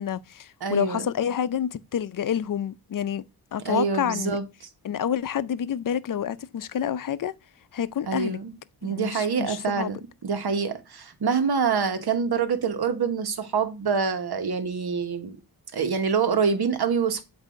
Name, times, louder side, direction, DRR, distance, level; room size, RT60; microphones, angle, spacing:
voice 1, 0.0-3.2 3.5-4.4 4.8-7.3 7.7-8.4 8.8-9.9, left 9 dB, 50° left, 0.5 m, -28 dB
voice 2, 0.6-1.1 3.6-4.4 8.1-8.5 8.8-15.4 15.7-17.2, right 6 dB, 65° right, 1.2 m, -26 dB
8.1 x 2.7 x 5.1 m
cardioid pair, 85°, 41 cm